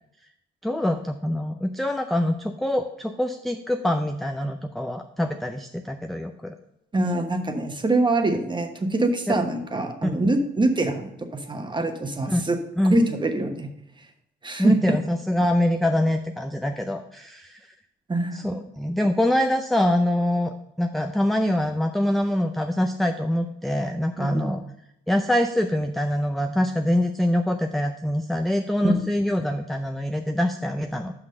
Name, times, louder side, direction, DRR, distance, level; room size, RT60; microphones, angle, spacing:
voice 1, 0.6-6.5 9.3-9.4 10.0-10.2 12.3-12.4 12.8-13.0 14.6-17.6 18.3-24.6 25.1-31.1, left 1 dB, ahead, 5 dB, 0.4 m, -24 dB
voice 2, 6.9-12.6 12.9-13.7 14.4-14.9 18.1-18.6 24.2-24.4 28.8-29.0, right 2 dB, 25° right, 5 dB, 1.2 m, -24 dB
6.0 x 5.8 x 6.4 m, 0.81 s
cardioid pair, 90°, 20 cm